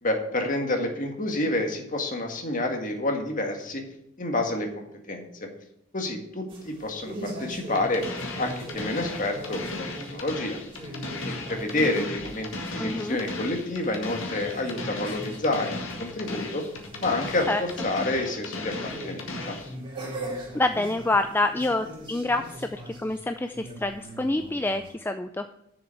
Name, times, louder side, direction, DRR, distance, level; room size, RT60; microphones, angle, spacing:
voice 1, 0.0-3.8 4.2-5.5 5.9-8.0 8.4-10.6 11.2-16.6 17.0-19.6, left 2 dB, 40° left, 3 dB, 1.8 m, -29 dB
sound 1, 6.5-24.9, right 1 dB, 25° right, 2.7 m, -41 dB
sound 2, 7.7-19.7, left 2 dB, 65° left, 1.9 m, -36 dB
voice 2, 12.8-13.2 17.5-17.6 20.5-22.4 22.7-25.4, left 2 dB, 10° left, 8 dB, 0.3 m, -27 dB
7.0 x 6.9 x 8.1 m, 0.77 s
head